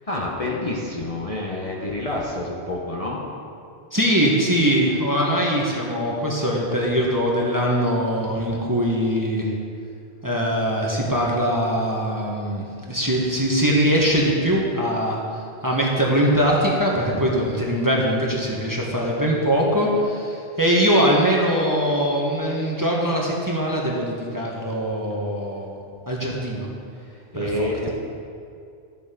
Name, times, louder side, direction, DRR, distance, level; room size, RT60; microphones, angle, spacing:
voice 1, 0.1-3.2 27.1-27.9, left 1 dB, 30° left, -3 dB, 1.2 m, -28 dB
voice 2, 3.9-9.5 10.2-15.2 15.6-25.8 26.1-26.7 27.3-27.7, equal, 15° right, -3 dB, 1.4 m, -22 dB
12.5 x 7.2 x 5.2 m, 2.4 s
omnidirectional pair, 1.2 m